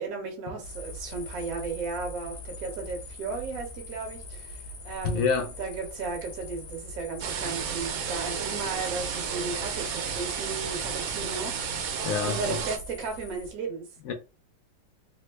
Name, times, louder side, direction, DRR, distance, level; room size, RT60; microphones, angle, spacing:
voice 1, 0.0-5.3 5.6-12.0 12.2-13.9, right 4 dB, 55° right, 1.4 m, -35 dB
sound 1, 0.6-13.5, left 1 dB, 60° left, 1.1 m, -42 dB
voice 2, 5.0-5.5 12.0-12.4 14.1-14.2, left 5 dB, 80° left, 0.7 m, -26 dB
sound 2, 7.2-12.8, right 7 dB, 85° right, 1.4 m, -32 dB
3.4 x 2.1 x 3.1 m
omnidirectional pair, 2.0 m